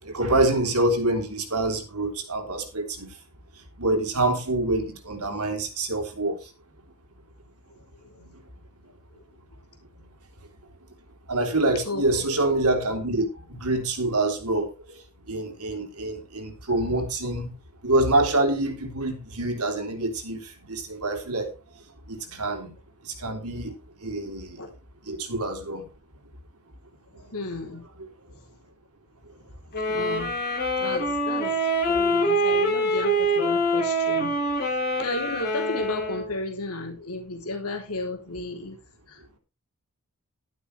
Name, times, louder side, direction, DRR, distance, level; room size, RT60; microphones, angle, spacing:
voice 1, 0.0-3.1 3.8-6.5 8.1-8.3 10.0-10.1 11.3-15.0 15.3-17.5 17.8-21.5 22.1-22.7 23.0-23.8 24.0-24.6 25.0-25.9 28.0-28.1 32.4-32.6, right 2 dB, 80° right, 3.5 m, -26 dB
voice 2, 27.3-27.8 29.9-30.3 30.8-31.6 31.9-34.3 35.0-38.8 39.1-39.4, left 2 dB, 75° left, 3.4 m, -33 dB
sound 1, 29.7-36.3, right 1 dB, 45° left, 7.9 m, -25 dB
12.5 x 11.5 x 3.3 m
head